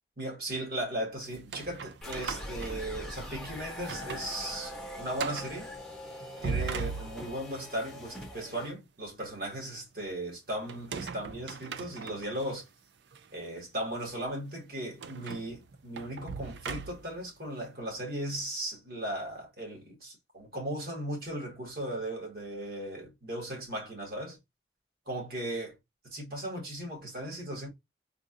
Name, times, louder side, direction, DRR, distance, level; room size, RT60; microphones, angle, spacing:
voice 1, 0.2-5.7 6.4-12.7 13.3-24.4 25.1-25.7 26.0-27.7, right 1 dB, 55° right, 1.8 m, -37 dB
sound 1, 1.3-3.4 3.8-4.3 4.7-4.8 5.2-5.6 6.2-7.5 10.7-12.5 13.1-13.2 15.0-17.2, right 5 dB, 75° right, 0.4 m, -39 dB
sound 2, 2.0-8.7, left 1 dB, ahead, 0.8 m, -42 dB
3.8 x 2.5 x 2.5 m
head